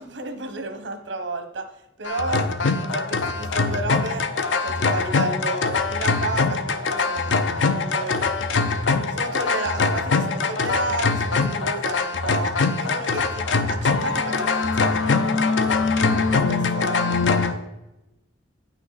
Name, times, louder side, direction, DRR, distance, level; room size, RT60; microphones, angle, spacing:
voice 1, 0.0-4.3 4.6-8.2 9.1-15.2 16.1-17.6, right 2 dB, 90° right, 6 dB, 1.2 m, -32 dB
sound 1, 2.1-17.5, left 4 dB, 80° left, 0.6 m, -23 dB
9.2 x 6.0 x 4.1 m, 0.95 s
head